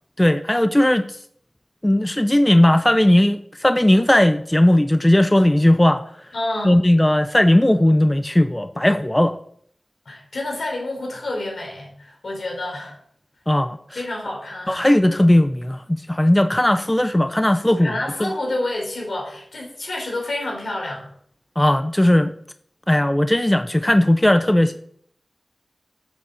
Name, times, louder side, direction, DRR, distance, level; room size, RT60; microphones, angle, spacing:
voice 1, 0.2-1.2 1.8-6.0 6.6-9.4 13.5-14.0 14.7-17.9 18.2-18.3 21.6-22.3 22.9-24.9, left 1 dB, 15° left, 10 dB, 0.5 m, -17 dB
voice 2, 6.3-6.8 10.1-13.0 14.0-14.9 17.8-21.1, left 1 dB, 75° left, 0 dB, 3.8 m, -28 dB
7.9 x 6.8 x 7.1 m, 0.66 s
wide cardioid pair, 60°, 0 cm